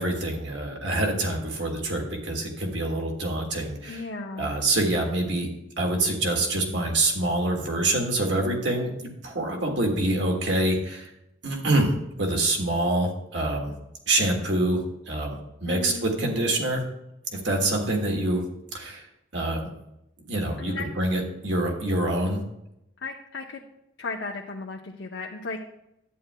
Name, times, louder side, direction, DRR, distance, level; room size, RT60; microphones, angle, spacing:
voice 1, 0.0-4.1 4.3-5.5 5.8-11.1 11.4-11.9 12.2-13.7 14.1-14.8 15.1-16.8 17.3-18.4 18.7-19.1 19.3-19.7 20.3-22.4, right 1 dB, 70° right, 0 dB, 1.7 m, -26 dB
voice 2, 3.9-4.5 15.7-16.0 20.6-20.9 23.0-23.6 24.0-25.6, left 3 dB, 75° left, 0 dB, 0.7 m, -35 dB
11.0 x 9.2 x 2.2 m, 0.84 s
head